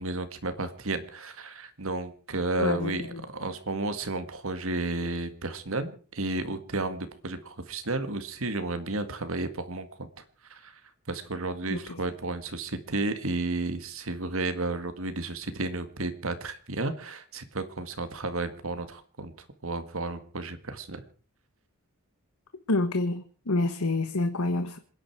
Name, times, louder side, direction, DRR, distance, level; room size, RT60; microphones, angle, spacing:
voice 1, 0.0-10.1 10.5-10.7 11.1-19.3 19.6-21.0, right 2 dB, 65° right, 1.8 m, -32 dB
voice 2, 2.6-3.2 11.7-11.8 22.7-24.8, left 2 dB, 80° left, 1.3 m, -28 dB
27.5 x 10.5 x 4.7 m
head